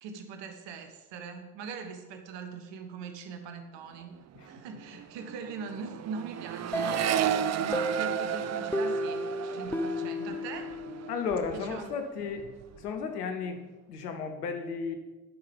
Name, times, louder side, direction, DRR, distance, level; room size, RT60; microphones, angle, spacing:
voice 1, 0.0-4.2 4.4-7.2 7.6-10.7 11.5-11.9, right 5 dB, 70° right, 7 dB, 1.0 m, -41 dB
Accelerating revving vroom, 3.9-4.2 4.4-12.0 12.3-12.9, right 10 dB, 35° right, 0.5 m, -34 dB
sound 1, 6.7-11.4, left 1 dB, 5° left, 0.7 m, -34 dB
voice 2, 11.1-12.5 12.8-13.6 13.9-15.0, left 5 dB, 90° left, 6 dB, 0.9 m, -33 dB
10.0 x 5.6 x 5.1 m, 1.2 s
hypercardioid pair, 40°, 45 cm